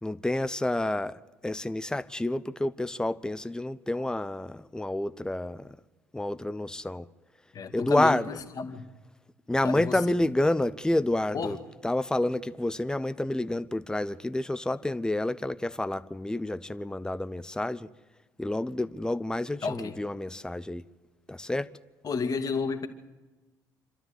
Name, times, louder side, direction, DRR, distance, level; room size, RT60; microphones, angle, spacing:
voice 1, 0.0-5.8 6.1-7.1 7.7-8.3 9.5-11.6 11.8-17.9 18.4-20.9 21.3-21.7, left 1 dB, 10° left, 0.8 m, -29 dB
voice 2, 7.5-8.8 9.6-10.0 11.3-11.5 19.6-19.9 22.0-22.9, left 5 dB, 45° left, 2.3 m, -31 dB
26.5 x 13.0 x 8.2 m
hypercardioid pair, 55°, 9 cm